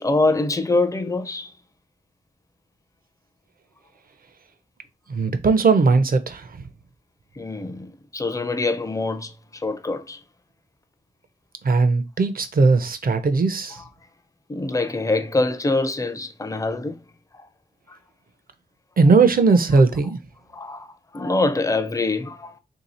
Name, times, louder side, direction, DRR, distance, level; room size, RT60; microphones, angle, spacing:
voice 1, 0.0-1.5 7.4-10.2 13.7-13.9 14.5-17.0 17.3-17.5 17.9-18.0 20.5-22.6, left 2 dB, 15° left, 0.4 m, -25 dB
voice 2, 5.1-6.5 11.6-13.8 19.0-20.2, right 4 dB, 50° right, 0.5 m, -18 dB
3.1 x 2.7 x 4.1 m
wide cardioid pair, 115°, 19 cm